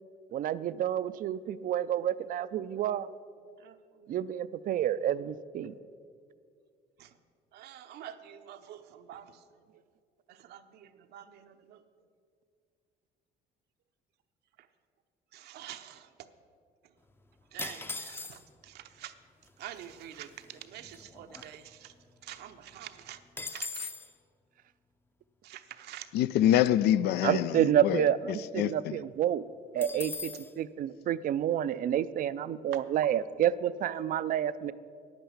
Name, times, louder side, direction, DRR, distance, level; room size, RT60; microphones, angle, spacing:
voice 1, 0.3-3.1 4.1-5.7 27.2-29.4 29.7-34.7, right 10 dB, 55° right, 0.4 m, -29 dB
voice 2, 3.6-4.1 7.0-7.1 7.5-9.4 10.3-11.8 15.3-16.1 17.5-19.1 19.6-21.9 22.2-23.2 23.5-23.9 25.4-26.1, right 11 dB, 75° right, 0.8 m, -47 dB
sound 1, 17.6-18.7 19.5-19.6 19.8-20.1 20.5-22.0 22.3-22.4 22.7-24.1 29.8-30.5, left 3 dB, 15° left, 0.6 m, -40 dB
voice 3, 26.1-28.1 28.6-28.7, left 12 dB, 75° left, 0.4 m, -25 dB
9.7 x 9.0 x 7.2 m
cardioid pair, 110°, 17 cm